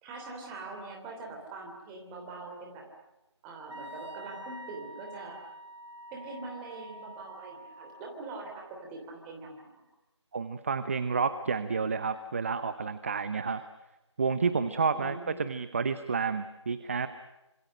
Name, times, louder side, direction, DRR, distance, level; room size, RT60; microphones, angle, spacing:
voice 1, 0.0-2.9 3.4-5.4 6.1-9.8 14.9-15.4, right 3 dB, 10° right, 1 dB, 3.1 m, -43 dB
Wind instrument woodwind instrument, 3.7-8.1, equal, 70° right, 3.3 m, -46 dB
voice 2, 10.3-13.6 14.2-17.1, right 5 dB, 25° right, 12 dB, 0.8 m, -30 dB
27.0 x 26.5 x 6.4 m, 0.98 s
figure-of-eight pair, 165°, 16 cm